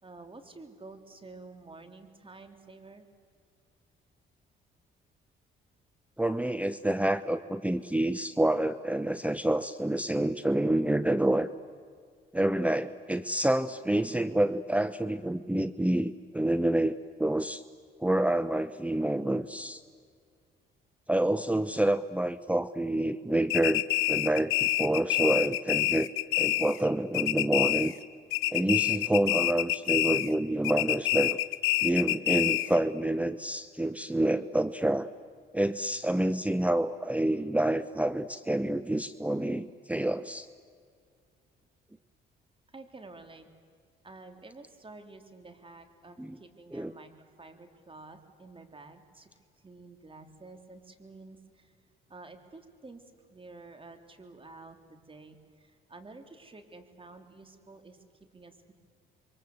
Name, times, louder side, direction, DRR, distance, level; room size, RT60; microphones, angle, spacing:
voice 1, 0.0-3.1 42.7-43.5 44.0-47.1 47.4-51.7 52.1-53.0 53.3-58.7, right 3 dB, 25° right, 6 dB, 3.4 m, -50 dB
voice 2, 6.2-11.5 12.3-17.6 18.0-19.8 21.1-23.8 24.1-26.1 26.4-27.9 28.5-31.4 31.8-35.1 35.5-40.5 46.2-46.4 46.7-46.9, right 1 dB, 5° right, 13 dB, 0.9 m, -28 dB
sound 1, 23.5-26.9 27.1-28.0 28.3-30.4 30.6-32.8, left 16 dB, 85° left, 0.7 m, -27 dB
28.0 x 23.5 x 8.0 m, 2.1 s
supercardioid pair, 70°, 21 cm